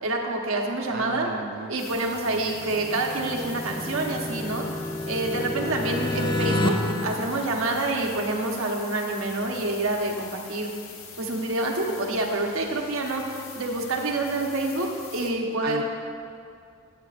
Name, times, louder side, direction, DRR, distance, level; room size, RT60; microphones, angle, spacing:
voice 1, 0.0-1.3 1.7-4.6 5.0-6.8 7.0-10.7 11.2-13.2 13.5-14.9 15.1-15.8, right 2 dB, 80° right, 1 dB, 1.2 m, -27 dB
voice 2, 0.9-3.0 15.6-15.8, right 4 dB, 50° right, 3 dB, 0.4 m, -37 dB
sound 1, 1.8-15.3, left 5 dB, 85° left, 1.2 m, -44 dB
sound 2, 2.6-8.4, left 1 dB, 25° left, 0.4 m, -30 dB
16.0 x 7.6 x 2.5 m, 2.3 s
head